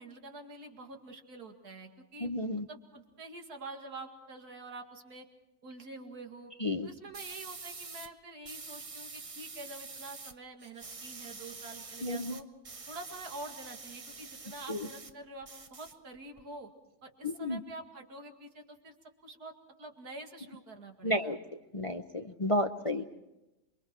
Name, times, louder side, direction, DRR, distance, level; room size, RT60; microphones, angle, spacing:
voice 1, 0.0-2.3 2.7-5.3 5.6-6.5 6.8-12.4 12.9-16.7 17.0-19.0 19.2-19.5 19.8-21.4 22.8-23.0, right 2 dB, 85° right, 3 dB, 2.7 m, -47 dB
voice 2, 2.2-2.7 6.6-6.9 12.0-12.4 14.7-14.9 17.2-17.6 21.0-21.4 21.7-23.0, left 1 dB, 35° left, 7 dB, 0.5 m, -32 dB
sound 1, 7.1-8.1 8.5-10.3 10.6-15.1 15.4-16.4, right 4 dB, 30° right, 0.6 m, -46 dB
28.5 x 24.0 x 4.5 m, 0.98 s
omnidirectional pair, 1.6 m